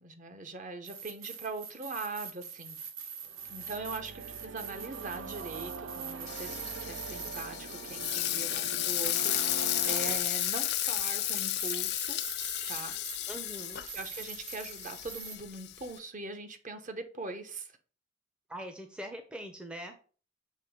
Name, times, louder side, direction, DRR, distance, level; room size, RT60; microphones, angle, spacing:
voice 1, 0.0-2.8 3.5-6.5 6.8-12.2 12.6-12.9 13.9-17.7, right 3 dB, 40° right, 7 dB, 0.8 m, -41 dB
sound 1, 0.8-15.4, right 7 dB, 80° right, 0.9 m, -44 dB
sound 2, 3.2-10.2, right 3 dB, 65° right, 0.4 m, -43 dB
Frying (food), 6.3-16.0, left 15 dB, 55° left, 0.4 m, -33 dB
voice 2, 13.3-13.8 18.5-19.9, equal, 5° right, 5 dB, 0.5 m, -42 dB
6.8 x 3.0 x 4.8 m, 0.39 s
head